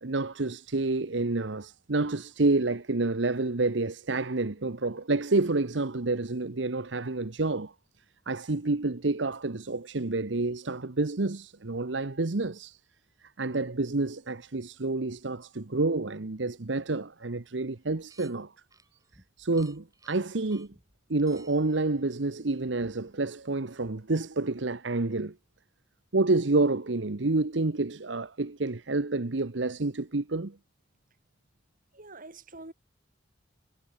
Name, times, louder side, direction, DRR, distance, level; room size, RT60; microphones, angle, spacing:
voice 1, 0.0-7.7 8.3-12.8 13.4-18.5 19.4-20.7 21.1-25.3 26.1-30.6, right 2 dB, 70° right, 1.1 m, -28 dB
sound 1, 17.7-18.4 18.7-23.2, right 2 dB, 20° right, 4.9 m, -57 dB
voice 2, 31.9-32.7, right 2 dB, 45° right, 5.8 m, -45 dB
head